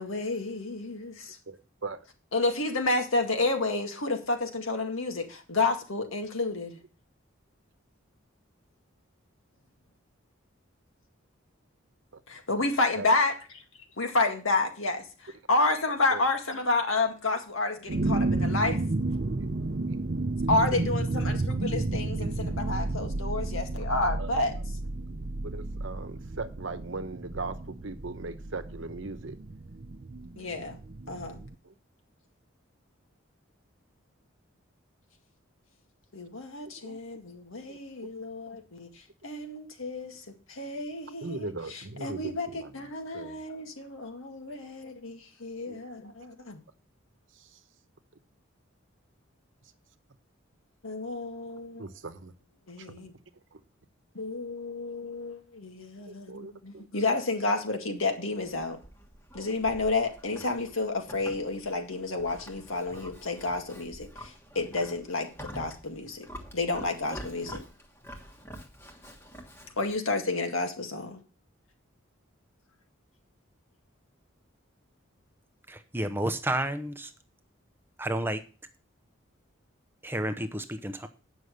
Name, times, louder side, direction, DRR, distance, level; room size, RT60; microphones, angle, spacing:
voice 1, 0.0-1.4 2.3-6.8 12.3-13.3 14.0-18.8 20.5-24.5 30.4-30.8 31.1-31.4 36.1-38.9 39.2-40.2 40.5-46.6 50.8-51.8 52.7-53.1 54.2-58.8 59.3-66.3 66.5-67.6 69.8-71.2, left 2 dB, 85° left, 4 dB, 2.0 m, -30 dB
voice 2, 1.5-2.0 12.1-12.2 12.9-13.1 16.1-16.2 20.4-20.8 22.7-22.8 24.2-24.4 25.4-29.4 31.6-31.7 36.8-37.0 37.7-37.8 41.2-42.9 43.1-43.4 44.6-44.7 45.7-45.8 47.4-47.5 51.8-52.3 52.8-53.0 53.5-53.6 56.1-56.9 62.9-63.1, right 3 dB, 65° right, 10 dB, 1.0 m, -39 dB
sound 1, 17.9-31.5, right 2 dB, 45° right, 0.6 m, -32 dB
Livestock farm animals working animals, 58.4-70.0, equal, 10° left, 1.3 m, -47 dB
voice 3, 75.7-77.1 78.0-78.4 80.0-81.1, right 1 dB, 10° right, 8 dB, 0.7 m, -31 dB
9.5 x 6.2 x 6.7 m, 0.36 s
head